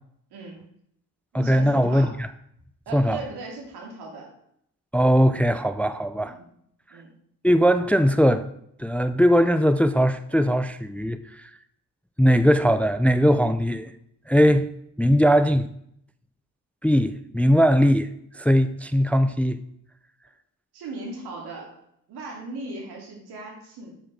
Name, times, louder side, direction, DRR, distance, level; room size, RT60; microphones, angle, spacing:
voice 1, 0.3-0.6 1.3-2.1 2.9-4.3 6.2-6.5 6.9-7.1 20.7-21.8 22.1-23.9, right 2 dB, 85° right, 3.0 m, -38 dB
voice 2, 1.3-2.3 2.9-3.2 4.9-6.3 7.4-8.5 8.8-11.2 12.2-13.9 14.3-14.7 15.0-15.7 16.8-18.1 18.4-19.6, equal, 5° left, 0.4 m, -20 dB
8.9 x 5.0 x 6.3 m
cardioid pair, 85°, 38 cm